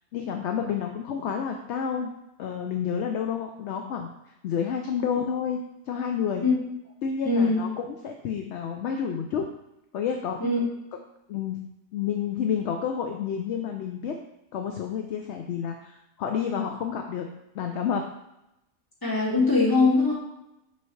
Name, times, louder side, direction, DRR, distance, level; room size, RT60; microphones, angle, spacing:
voice 1, 0.1-2.1 2.4-4.1 4.4-5.6 5.9-6.4 7.0-9.4 9.9-10.4 11.3-11.6 11.9-14.1 14.5-17.3 17.5-18.0, left 7 dB, 65° left, 4 dB, 0.8 m, -29 dB
voice 2, 7.2-7.6 10.4-10.6 19.0-20.1, left 3 dB, 15° left, -7 dB, 1.9 m, -21 dB
5.6 x 5.6 x 3.1 m, 0.86 s
omnidirectional pair, 1.4 m